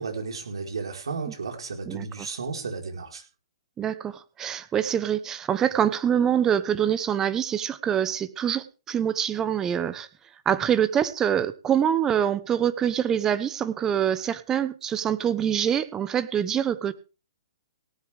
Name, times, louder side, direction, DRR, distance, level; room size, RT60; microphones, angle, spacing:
voice 1, 0.0-3.2, right 4 dB, 80° right, 3 dB, 4.7 m, -33 dB
voice 2, 3.8-10.1 10.4-16.9, right 9 dB, 20° right, 14 dB, 1.0 m, -25 dB
18.0 x 11.0 x 3.6 m, 0.33 s
hypercardioid pair, 135°, 3 cm